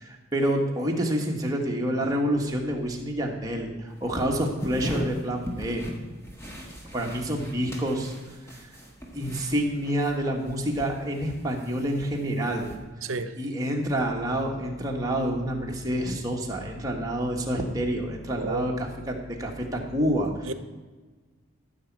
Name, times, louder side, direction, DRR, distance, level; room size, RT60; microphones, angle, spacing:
voice 1, 0.0-5.8 6.9-8.1 8.6-8.7 9.1-12.7 13.0-20.5, equal, 15° right, -1 dB, 1.4 m, -28 dB
sound 1, 3.9-10.1 10.4-12.8, equal, 10° left, 1.5 m, -39 dB
voice 2, 13.0-13.3 18.3-18.7 20.4-20.5, right 3 dB, 70° right, 12 dB, 0.7 m, -31 dB
14.0 x 7.1 x 4.7 m, 1.3 s
head